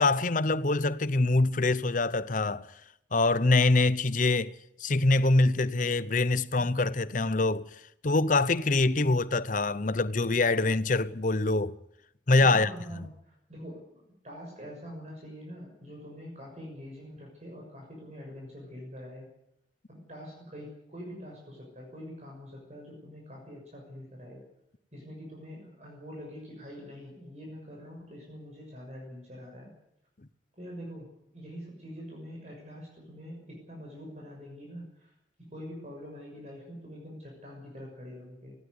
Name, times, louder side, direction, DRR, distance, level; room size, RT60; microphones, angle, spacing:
voice 1, 0.0-2.7 3.1-4.5 4.8-7.7 8.0-11.8 12.3-12.7, left 2 dB, 45° left, 0.8 m, -24 dB
voice 2, 12.4-19.3 19.9-24.4 24.9-29.7 30.6-35.1 35.5-38.6, equal, 35° right, 6.5 m, -45 dB
19.5 x 16.5 x 9.7 m
head